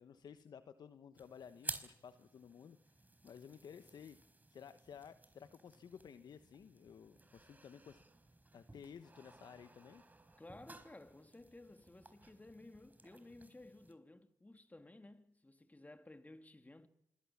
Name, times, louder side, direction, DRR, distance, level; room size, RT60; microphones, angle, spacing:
voice 1, 0.0-2.8 3.2-4.2 4.5-8.0 8.5-10.0, left 7 dB, 65° left, 1.1 m, -55 dB
sound 1, 1.1-13.9, right 2 dB, 25° right, 4.7 m, -54 dB
voice 2, 10.4-16.9, left 2 dB, 20° left, 2.8 m, -56 dB
26.0 x 21.5 x 7.4 m
supercardioid pair, 50°, 7 cm